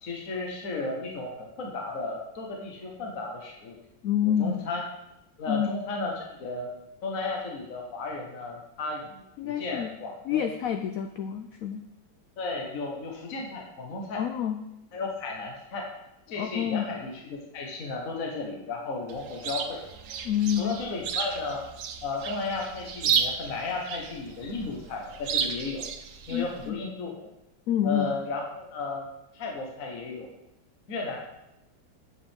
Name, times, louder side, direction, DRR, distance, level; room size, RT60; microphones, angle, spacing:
voice 1, 0.0-3.8 4.2-4.8 5.4-6.7 7.0-10.4 12.4-14.2 14.9-15.9 16.3-19.8 20.6-21.6 22.0-25.9 26.3-27.3 27.8-29.1 29.3-30.3 30.9-31.2, left 3 dB, 50° left, 0 dB, 1.5 m, -34 dB
voice 2, 4.0-4.6 5.5-5.7 9.4-9.9 10.3-11.8 14.1-14.6 16.4-16.9 20.2-20.8 26.3-26.8 27.7-28.1, left 10 dB, 80° left, 7 dB, 0.7 m, -28 dB
Chirp tweet, 19.1-26.7, right 7 dB, 85° right, 1.5 m, -33 dB
8.1 x 7.5 x 3.6 m, 0.88 s
omnidirectional pair, 2.0 m